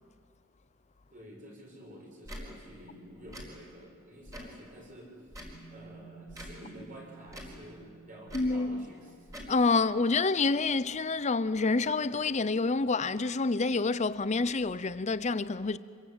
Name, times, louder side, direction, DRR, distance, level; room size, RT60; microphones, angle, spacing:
voice 1, 1.1-5.2 5.7-9.3, equal, 35° right, 7.0 m, -49 dB
Tick / Tick-tock, 2.2-2.5 3.3-3.5 4.3-4.6 5.3-5.6 6.3-6.6 7.3-7.6 8.3-8.5 9.3-9.5, equal, 15° right, 4.4 m, -44 dB
sound 1, 5.5-14.9, right 5 dB, 10° left, 3.2 m, -58 dB
voice 2, 8.3-8.9 9.5-15.8, left 3 dB, 30° left, 0.6 m, -28 dB
26.0 x 22.5 x 8.9 m
head